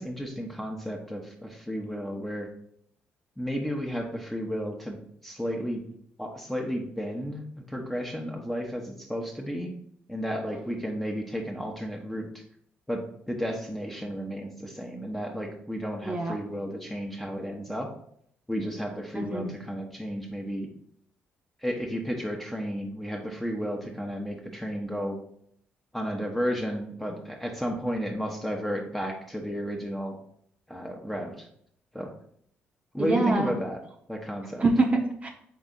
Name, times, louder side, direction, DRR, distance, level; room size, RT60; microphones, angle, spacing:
voice 1, 0.0-2.5 3.4-5.8 6.2-9.7 10.1-12.4 12.9-17.9 18.5-20.7 21.6-25.2 25.9-30.2 30.7-31.5 31.9-32.1 32.9-33.8 34.1-34.6, equal, 5° left, 1 dB, 0.9 m, -33 dB
voice 2, 16.0-16.3 19.1-19.5 33.0-33.5 34.6-35.3, right 2 dB, 30° right, 1 dB, 0.8 m, -25 dB
3.9 x 3.5 x 3.8 m, 0.68 s
supercardioid pair, 60°, 5 cm